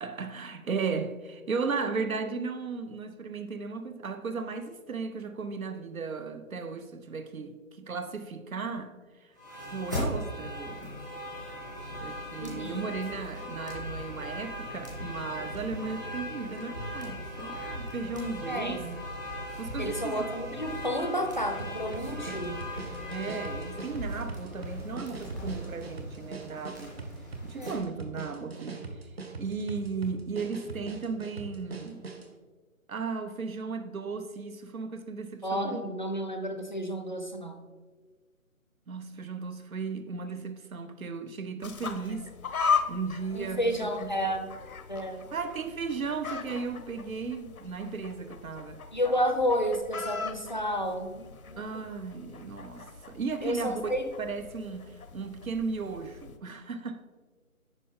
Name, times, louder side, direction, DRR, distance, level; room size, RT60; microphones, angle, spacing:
voice 1, 0.0-11.0 12.0-18.8 19.6-20.2 23.1-27.0 27.4-28.8 29.4-32.1 32.9-35.9 38.9-42.3 42.9-44.1 45.3-48.8 51.6-57.0, right 4 dB, 70° right, 0.9 m, -36 dB
sound 1, 9.4-27.7, equal, 15° right, 0.8 m, -38 dB
voice 2, 12.4-12.9 18.5-18.9 19.8-22.6 27.6-27.8 35.4-37.6 43.3-44.5 44.9-45.3 48.9-51.8 53.4-54.1, equal, 35° left, 0.5 m, -31 dB
sound 2, 21.6-32.3, right 3 dB, 45° right, 0.9 m, -42 dB
sound 3, 41.6-56.4, left 5 dB, 85° left, 0.9 m, -38 dB
9.2 x 5.5 x 3.7 m
figure-of-eight pair, 165°, 42 cm